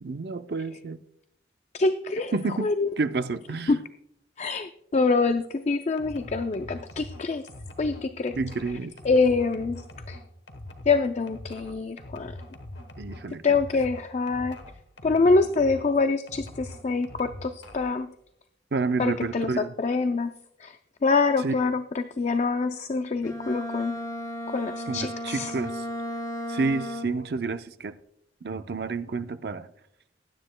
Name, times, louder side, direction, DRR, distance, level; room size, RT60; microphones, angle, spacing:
voice 1, 0.0-1.0 2.3-3.8 8.4-8.9 13.0-13.4 18.7-19.7 21.4-21.5 24.9-25.8 26.5-28.0 28.4-29.7, right 4 dB, 60° right, 0.5 m, -29 dB
voice 2, 1.7-2.9 3.7-3.8 4.4-7.4 7.8-8.4 9.0-9.8 10.1-10.2 10.9-12.3 13.4-14.6 15.0-18.1 19.0-20.3 20.6-20.8 21.0-24.0 24.5-25.6, left 3 dB, 40° left, 0.4 m, -25 dB
sound 1, 6.0-15.9 16.3-18.0, left 1 dB, 85° left, 1.1 m, -43 dB
Bowed string instrument, 23.2-27.3, left 1 dB, 20° left, 2.2 m, -35 dB
19.5 x 9.8 x 2.2 m
head